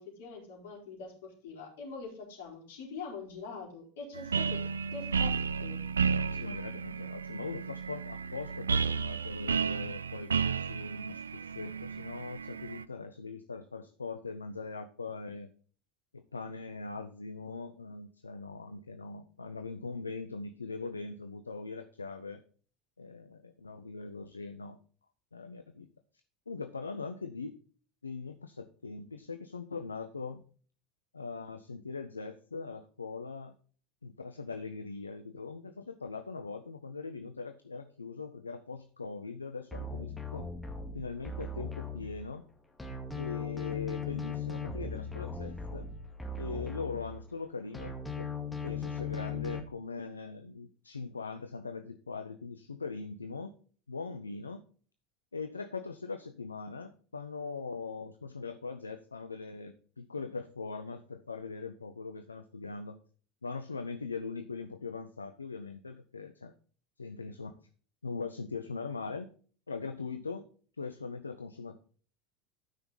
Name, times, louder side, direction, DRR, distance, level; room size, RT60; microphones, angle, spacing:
voice 1, 0.0-4.7 4.9-5.8, left 4 dB, 65° left, -1 dB, 4.3 m, -44 dB
sound 1, 4.1-12.8, right 5 dB, 80° right, 0.4 m, -33 dB
voice 2, 6.2-15.5 16.1-22.4 23.0-24.8 25.3-25.9 26.5-27.5 28.0-30.4 31.1-33.6 34.0-40.5 40.9-42.4 43.1-45.9 46.4-48.3 48.6-53.5 53.9-54.6 55.3-63.0 63.4-66.5 67.0-67.6 68.0-69.3 69.7-70.5 70.8-71.8, left 4 dB, 80° left, 9 dB, 0.6 m, -41 dB
sound 2, 39.7-42.5 42.8-47.5 47.7-49.6, left 4 dB, 10° left, 2.1 m, -38 dB
12.5 x 5.7 x 4.0 m, 0.42 s
figure-of-eight pair, 75°, 0 cm